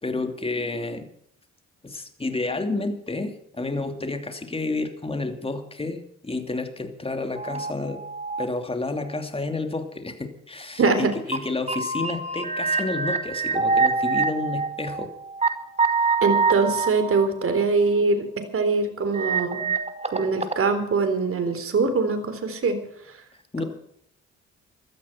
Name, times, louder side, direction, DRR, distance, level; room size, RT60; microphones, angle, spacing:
voice 1, 0.0-1.1 1.8-8.0 8.4-15.1 16.0-16.1 23.5-23.6, left 3 dB, 20° left, 6 dB, 2.9 m, -30 dB
sound 1, 7.4-8.5 9.1-9.2 11.0-11.1 11.3-11.4 11.7-15.5 15.8-17.6 19.1-20.6, right 4 dB, 20° right, 2.0 m, -25 dB
voice 2, 10.8-11.1 16.2-18.3 18.5-19.7 20.1-22.8, right 4 dB, 45° right, 8 dB, 3.8 m, -23 dB
16.0 x 13.0 x 5.8 m, 0.71 s
cardioid pair, 90°, 30 cm